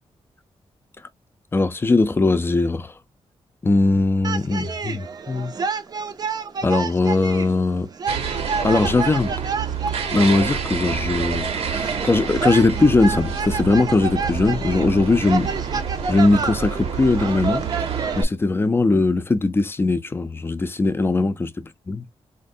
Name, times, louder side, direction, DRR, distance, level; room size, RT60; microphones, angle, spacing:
voice 1, 1.5-2.9 3.6-5.5 6.6-7.9 8.6-9.4 10.1-15.5 16.1-17.7 18.2-22.1, left 3 dB, 20° left, 0.5 m, -20 dB
sound 1, 4.2-18.2, right 5 dB, 40° right, 0.6 m, -29 dB
sound 2, 8.1-18.2, right 6 dB, 70° right, 1.0 m, -28 dB
4.3 x 2.5 x 2.6 m
wide cardioid pair, 160°, 11 cm